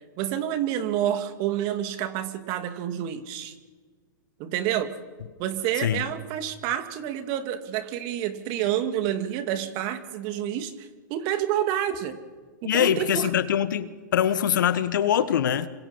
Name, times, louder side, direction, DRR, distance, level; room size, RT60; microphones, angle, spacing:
voice 1, 0.2-3.5 4.4-4.9 5.4-12.2 12.7-13.3, right 11 dB, 40° right, 9 dB, 2.4 m, -28 dB
voice 2, 12.6-15.7, left 9 dB, 70° left, 14 dB, 1.4 m, -23 dB
28.0 x 26.0 x 5.6 m, 1.5 s
hypercardioid pair, 120°, 11 cm